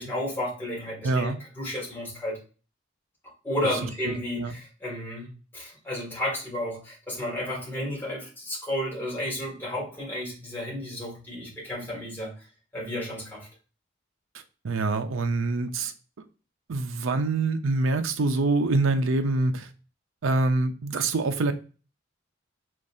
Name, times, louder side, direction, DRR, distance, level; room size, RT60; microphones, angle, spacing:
voice 1, 0.0-2.4 3.2-12.3 12.7-13.5, left 1 dB, 10° left, 1.8 m, -32 dB
voice 2, 1.0-1.4 4.4-4.5 14.6-15.9 16.7-19.7 20.2-21.5, right 3 dB, 90° right, 0.6 m, -25 dB
5.1 x 3.2 x 2.6 m
head